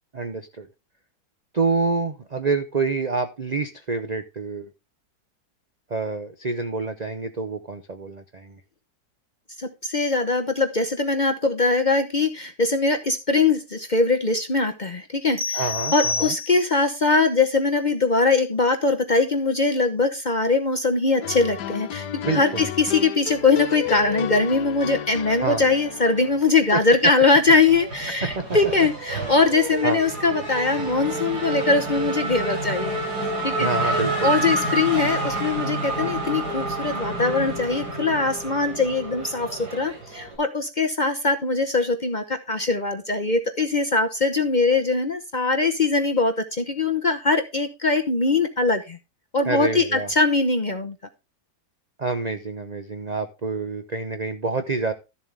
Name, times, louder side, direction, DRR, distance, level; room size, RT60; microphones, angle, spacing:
voice 1, 0.1-0.7 1.5-4.7 5.9-8.6 15.5-16.3 22.2-22.7 25.4-25.6 26.7-26.8 28.2-28.4 29.8-30.0 33.6-34.3 49.4-50.1 52.0-54.9, right 3 dB, 45° right, 8 dB, 0.5 m, -27 dB
voice 2, 9.6-15.6 15.9-33.0 33.4-49.0 49.3-50.9, left 3 dB, 35° left, 6 dB, 0.7 m, -22 dB
sound 1, 15.4-16.9, left 4 dB, 25° right, 1.7 m, -28 dB
sound 2, 21.2-26.4, left 11 dB, 75° left, 1.3 m, -32 dB
Race car auto racing / Accelerating revving vroom, 25.3-26.4 26.7-40.4, right 2 dB, 70° right, 4.2 m, -29 dB
13.0 x 7.3 x 3.4 m, 0.27 s
omnidirectional pair, 1.8 m